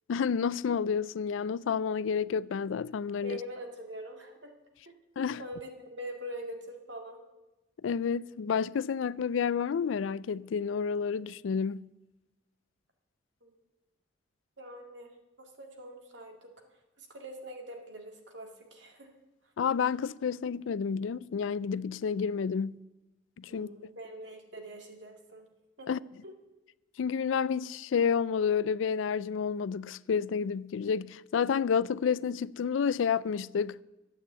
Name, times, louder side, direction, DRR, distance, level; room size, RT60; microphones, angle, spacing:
voice 1, 0.1-3.4 5.2-5.4 7.8-11.9 19.6-22.8 23.4-23.7 25.9-26.0 27.0-33.8, left 6 dB, 85° left, 0.4 m, -30 dB
voice 2, 3.2-4.5 4.9-5.0 5.4-7.2 13.4-13.6 14.6-15.1 15.4-16.5 17.0-19.1 23.5-25.5 25.8-25.9 26.2-26.3, equal, 70° right, 2.2 m, -44 dB
12.5 x 8.7 x 8.1 m
head